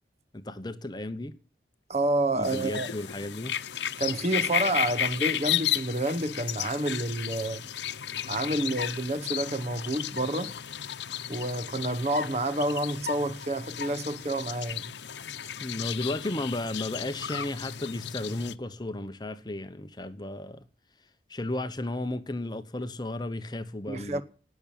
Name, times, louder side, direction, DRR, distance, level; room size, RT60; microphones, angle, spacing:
voice 1, 0.3-1.3 2.3-3.5 15.6-20.6 21.3-24.2, left 1 dB, 25° left, 1.0 m, -34 dB
voice 2, 1.9-2.9 4.0-7.6 8.2-10.5 11.3-14.9 23.9-24.2, right 1 dB, 35° right, 1.1 m, -29 dB
sound 1, 2.4-18.5, left 10 dB, 85° left, 0.8 m, -34 dB
19.0 x 7.1 x 9.0 m
head